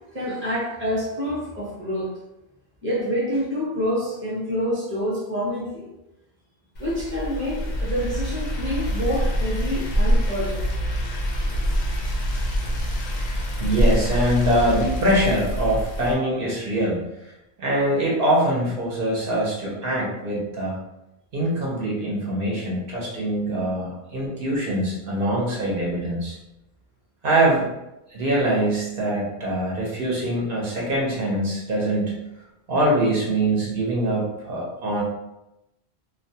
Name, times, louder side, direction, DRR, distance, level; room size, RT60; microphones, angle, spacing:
voice 1, 0.1-2.1 2.8-5.9 6.8-10.7 11.5-11.6 12.6-12.8, equal, 15° right, -6 dB, 0.6 m, -27 dB
sound 1, 6.7-16.1, equal, 55° left, 0.6 m, -25 dB
voice 2, 13.6-17.0 17.6-20.7 21.3-26.4 27.2-27.7 28.1-32.2 32.7-35.0, right 1 dB, 65° right, -4 dB, 0.8 m, -23 dB
2.3 x 2.2 x 2.7 m, 0.91 s
omnidirectional pair, 1.1 m